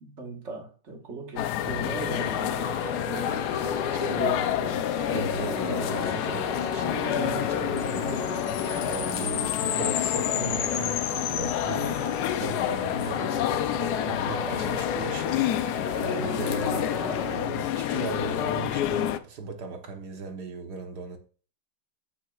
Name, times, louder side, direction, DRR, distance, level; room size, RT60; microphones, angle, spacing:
voice 1, 0.0-4.5, right 3 dB, 40° right, 1.5 m, -39 dB
sound 1, 1.4-19.2, left 11 dB, 70° left, 1.1 m, -28 dB
voice 2, 1.6-2.3 3.9-4.8 5.1-8.3 8.8-12.0 12.3-13.7 14.0-21.2, right 4 dB, 65° right, 1.6 m, -37 dB
sound 2, 1.8-17.4, left 1 dB, 50° left, 2.6 m, -37 dB
sound 3, 7.8-12.4, left 10 dB, 90° left, 1.5 m, -33 dB
15.0 x 6.3 x 2.3 m
omnidirectional pair, 2.0 m